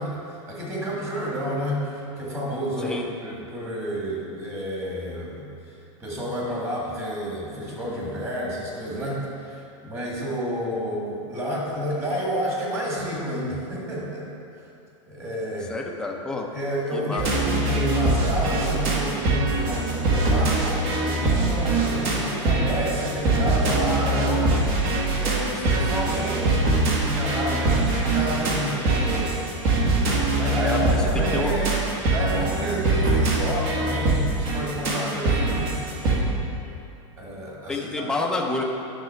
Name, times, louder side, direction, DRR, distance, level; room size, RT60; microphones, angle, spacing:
voice 1, 0.0-5.5 6.0-14.3 15.1-15.7 16.5-24.6 25.2-29.4 30.3-31.7 32.1-36.4 37.2-38.1, equal, 15° right, -4 dB, 1.8 m, -30 dB
voice 2, 15.7-16.5 16.9-17.2 24.5-24.6 30.6-31.0 31.3-31.6 35.5-35.6 37.7-38.6, left 2 dB, 5° left, 0 dB, 0.6 m, -29 dB
sound 1, 17.2-36.2, right 2 dB, 40° right, 1.4 m, -23 dB
10.5 x 6.1 x 4.5 m, 2.7 s
supercardioid pair, 160°, 17 cm